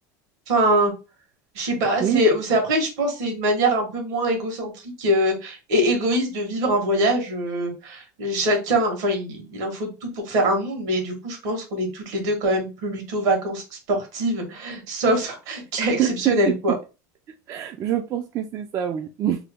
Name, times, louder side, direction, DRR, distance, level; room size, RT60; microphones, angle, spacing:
voice 1, 0.5-0.9 1.5-16.7, right 1 dB, 75° right, 3 dB, 1.6 m, -23 dB
voice 2, 16.0-16.3 17.5-19.4, right 11 dB, 35° right, 6 dB, 0.4 m, -24 dB
3.1 x 2.2 x 3.5 m, 0.30 s
supercardioid pair, 120°, 9 cm